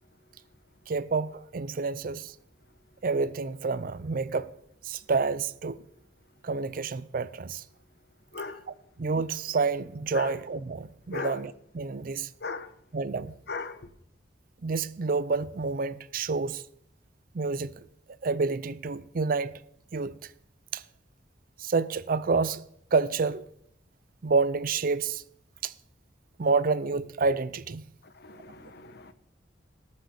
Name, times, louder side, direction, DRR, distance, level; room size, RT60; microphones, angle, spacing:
voice 1, 0.9-2.3 3.0-4.5 4.8-5.8 6.4-7.6 9.0-12.3 12.9-13.3 14.6-16.6 17.3-17.8 18.2-19.5 19.9-20.2 20.7-20.8 21.6-22.6 22.9-23.5 24.2-25.2 25.6-25.7 26.4-27.9, right 4 dB, 50° right, 0.5 m, -28 dB
voice 2, 13.5-13.8 28.2-29.1, left 4 dB, 60° left, 1.0 m, -37 dB
19.0 x 6.5 x 6.6 m
head